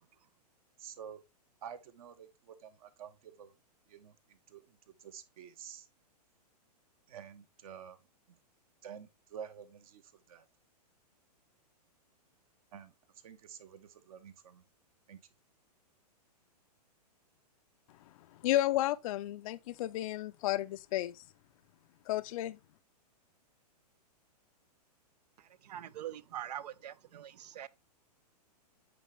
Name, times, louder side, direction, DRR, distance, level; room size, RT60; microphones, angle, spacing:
voice 1, 0.8-1.2 1.6-3.5 3.9-5.9 7.1-8.0 8.8-10.4 12.7-12.9 13.2-14.6 15.1-15.2, right 8 dB, 60° right, 1.1 m, -49 dB
voice 2, 18.4-21.2 22.1-22.6, left 14 dB, 55° left, 0.4 m, -32 dB
voice 3, 25.6-27.7, right 11 dB, 75° right, 0.5 m, -43 dB
8.5 x 3.7 x 3.1 m
hypercardioid pair, 130°, 21 cm